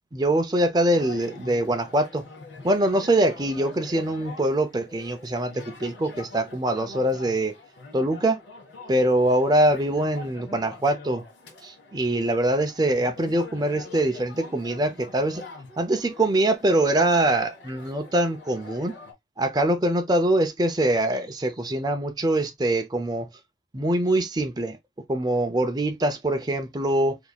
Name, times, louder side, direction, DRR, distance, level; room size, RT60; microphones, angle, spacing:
voice 1, 0.1-2.2 2.6-7.5 7.9-8.4 8.9-11.2 11.6-15.4 15.8-18.9 19.4-23.3 23.7-24.8 25.1-27.2, right 1 dB, 20° right, 0.5 m, -23 dB
sound 1, 1.0-19.1, left 3 dB, 75° left, 1.5 m, -45 dB
3.9 x 3.5 x 2.3 m
head